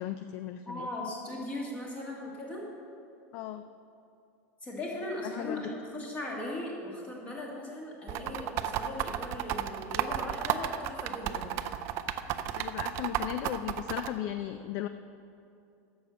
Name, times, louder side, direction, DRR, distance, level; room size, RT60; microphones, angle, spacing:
voice 1, 0.0-0.9 3.3-3.7 5.2-5.6 12.5-14.9, left 11 dB, 40° left, 10 dB, 0.3 m, -36 dB
voice 2, 0.7-2.7 4.6-11.6, left 1 dB, 15° left, -2 dB, 2.0 m, -38 dB
sound 1, 8.1-14.1, right 11 dB, 35° right, 0.4 m, -32 dB
11.5 x 7.1 x 6.4 m, 2.6 s
supercardioid pair, 175°, 8 cm